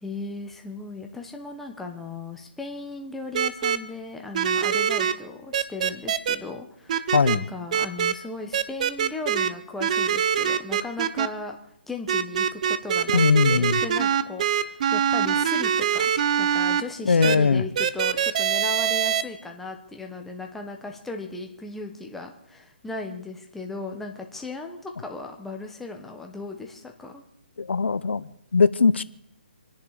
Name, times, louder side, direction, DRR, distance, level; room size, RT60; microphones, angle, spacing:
voice 1, 0.0-11.6 11.9-16.1 16.4-27.2, left 3 dB, 5° left, 1.2 m, -37 dB
sound 1, 3.3-3.8 4.3-5.1 5.5-6.4 6.9-7.4 7.7-8.1 8.5-9.5 9.8-11.3 12.1-16.8 17.2-17.4 17.8-19.2, right 8 dB, 40° right, 0.8 m, -23 dB
voice 2, 13.1-13.8 17.1-17.6 27.6-29.0, left 5 dB, 85° left, 0.8 m, -20 dB
26.5 x 10.5 x 5.0 m
hypercardioid pair, 160°, 6 cm